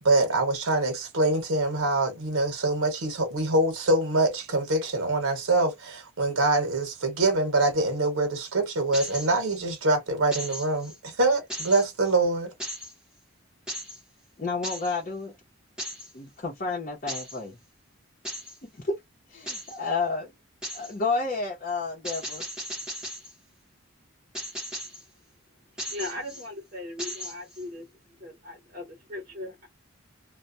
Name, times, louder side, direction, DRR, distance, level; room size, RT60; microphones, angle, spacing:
voice 1, 0.0-12.5, right 2 dB, 85° right, 0.9 m, -24 dB
sound 1, 8.9-9.6 10.3-11.0 11.5-12.1 12.6-12.9 13.7-14.0 14.6-14.9 15.8-16.1 17.1-17.4 18.2-18.6 19.5-19.8 20.6-20.9 22.0-23.3 24.3-25.0 25.8-26.5 27.0-27.6, equal, 5° right, 0.8 m, -37 dB
voice 2, 14.4-15.3 16.1-17.6 18.7-19.0 19.3-20.3 20.7-22.5, left 3 dB, 40° left, 0.8 m, -30 dB
voice 3, 25.9-27.9 28.2-29.7, left 1 dB, 40° right, 0.7 m, -38 dB
2.2 x 2.2 x 2.6 m
head